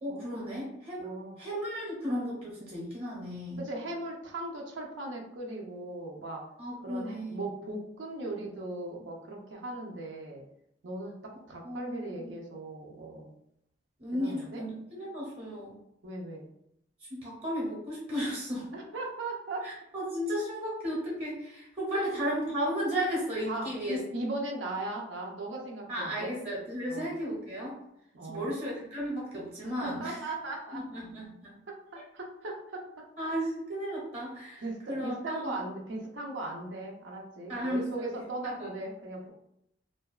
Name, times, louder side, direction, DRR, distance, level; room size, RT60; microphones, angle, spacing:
voice 1, 0.0-3.6 6.6-7.4 11.6-12.3 14.0-15.7 17.1-18.7 19.6-24.0 25.9-27.8 28.3-30.2 30.7-31.5 33.2-35.6 37.5-38.1 38.4-38.7, equal, 35° right, -5 dB, 0.9 m, -34 dB
voice 2, 1.0-1.4 3.6-6.4 6.8-10.4 10.8-13.3 14.1-14.6 16.0-16.5 18.7-19.7 21.9-22.0 23.5-26.3 26.9-27.1 28.1-28.5 29.6-30.8 31.7-31.8 32.1-33.5 34.6-39.3, right 2 dB, 85° right, 0 dB, 0.6 m, -38 dB
2.6 x 2.2 x 2.3 m, 0.78 s
head